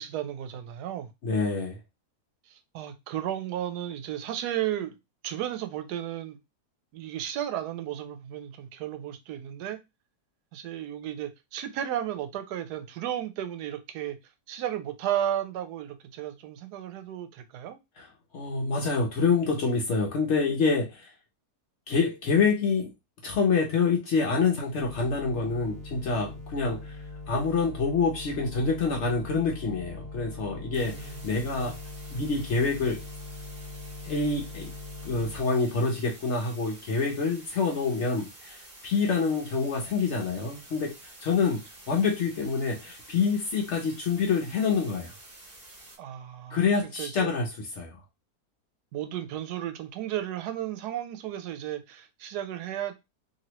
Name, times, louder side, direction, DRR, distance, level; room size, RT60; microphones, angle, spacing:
voice 1, 0.0-1.1 2.5-5.0 5.2-6.4 6.9-9.8 10.5-14.2 14.5-17.8 30.9-31.4 46.0-46.6 47.0-47.3 48.9-53.0, right 11 dB, 90° right, 1.1 m, -34 dB
voice 2, 1.2-1.8 18.0-18.1 18.3-21.1 21.9-22.9 23.2-27.0 27.3-31.8 32.1-33.0 34.0-34.7 35.0-45.1 46.5-48.0, left 4 dB, 65° left, 0.7 m, -27 dB
sound 1, 24.8-35.4, left 3 dB, 60° right, 1.3 m, -41 dB
sound 2, 30.7-46.0, right 1 dB, 35° right, 1.4 m, -49 dB
3.0 x 2.6 x 2.9 m
omnidirectional pair, 1.7 m